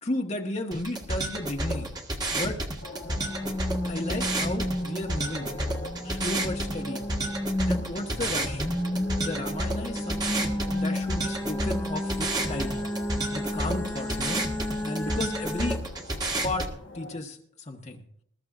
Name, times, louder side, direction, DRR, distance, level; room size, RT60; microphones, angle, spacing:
voice 1, 0.0-1.9 2.3-2.6 3.9-5.5 6.0-7.0 7.7-8.6 9.2-12.8 13.3-14.5 14.8-15.8 16.4-16.7 16.9-17.4 17.7-18.0, left 1 dB, 35° left, 2 dB, 1.2 m, -33 dB
sound 1, 0.7-16.7, right 1 dB, 20° right, 1.5 m, -31 dB
sound 2, 2.8-17.2, left 2 dB, 75° left, 1.4 m, -44 dB
sound 3, 3.2-15.8, left 1 dB, 10° left, 0.6 m, -32 dB
20.5 x 13.0 x 2.5 m, 0.67 s
head